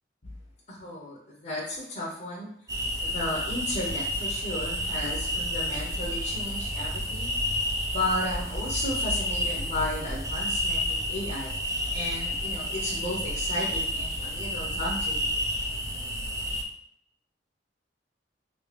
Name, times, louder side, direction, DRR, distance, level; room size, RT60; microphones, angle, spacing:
voice 1, 0.7-2.5 3.0-7.4 7.9-15.3, left 1 dB, 40° left, -5 dB, 0.8 m, -34 dB
sound 1, 2.7-16.6, equal, 20° right, 0.5 m, -30 dB
3.0 x 2.9 x 3.2 m, 0.73 s
head